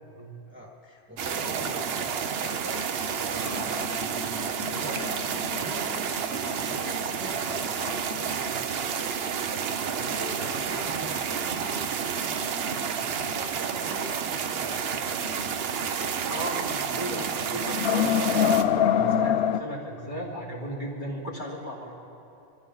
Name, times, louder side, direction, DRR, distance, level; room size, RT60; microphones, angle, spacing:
voice 1, 0.5-9.0 9.6-15.3, equal, 10° right, -2 dB, 1.5 m, -44 dB
sound 1, 1.2-18.6, right 7 dB, 75° right, 0.9 m, -30 dB
sound 2, 2.8-5.9 6.4-7.0 7.5-8.5 8.9-9.0 9.5-9.6 11.8-11.9 12.4-13.7 14.0-14.1 15.9-16.3 16.6-16.8 17.2-19.6, left 9 dB, 80° left, 0.8 m, -28 dB
voice 2, 16.3-21.9, equal, 50° left, -6 dB, 3.0 m, -35 dB
23.0 x 14.5 x 3.9 m, 2.7 s
omnidirectional pair, 1.1 m